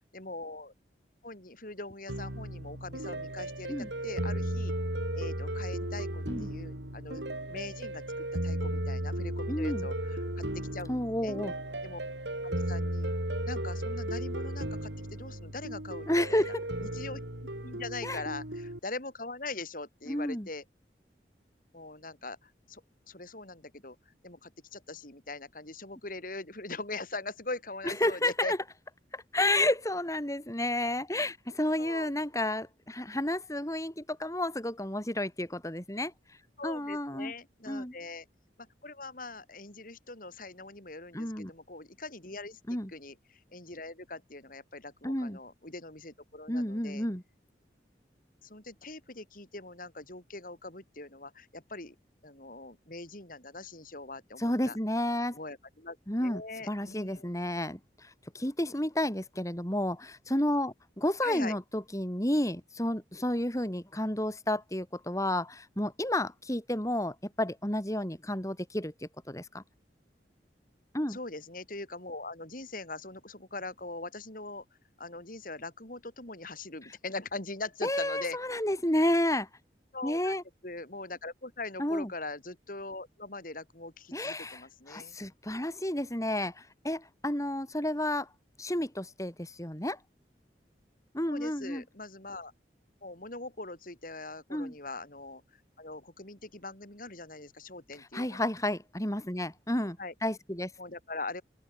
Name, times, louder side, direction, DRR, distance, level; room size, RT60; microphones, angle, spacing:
voice 1, 0.1-0.7 1.2-3.7 4.0-4.7 5.1-7.2 7.5-10.9 11.2-11.4 11.8-12.0 12.4-13.1 13.5-16.4 16.8-17.2 17.6-20.6 21.7-22.8 23.1-28.5 31.8-32.1 36.6-38.3 38.8-47.1 48.4-51.9 52.2-54.8 55.3-57.3 61.2-61.6 71.1-74.6 75.0-78.4 79.9-80.4 80.6-85.2 91.3-92.5 93.0-95.4 95.8-98.4 100.0-100.1 100.8-101.4, left 3 dB, 50° left, 4.9 m, -42 dB
sound 1, 2.1-18.8, right 1 dB, 85° right, 6.2 m, -35 dB
voice 2, 9.5-9.9 10.9-11.5 16.1-16.6 18.0-18.2 20.1-20.5 27.8-28.6 29.1-36.1 36.6-37.3 37.7-37.9 41.1-41.5 42.7-42.9 45.0-45.4 46.5-47.2 54.4-55.4 56.1-56.4 56.7-69.6 70.9-71.2 77.8-79.5 80.0-80.4 81.8-82.1 84.1-88.3 88.6-90.0 91.1-91.8 94.5-94.7 98.1-100.7, left 1 dB, 20° left, 3.8 m, -31 dB
open air
head